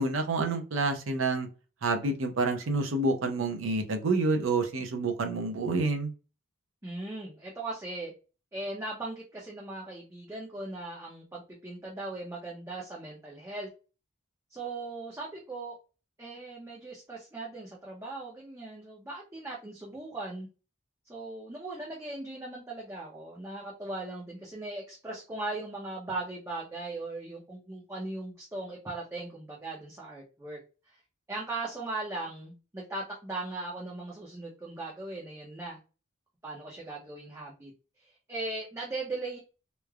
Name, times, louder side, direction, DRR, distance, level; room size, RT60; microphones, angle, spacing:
voice 1, 0.0-1.5 1.8-6.1, right 3 dB, 80° right, 6 dB, 0.6 m, -28 dB
voice 2, 6.8-8.1 8.5-13.7 14.5-15.8 16.2-20.5 21.1-30.6 30.9-31.0 31.3-35.8 36.4-37.7 38.0-39.4, right 2 dB, 15° right, -4 dB, 0.5 m, -38 dB
3.1 x 2.0 x 2.3 m, 0.33 s
head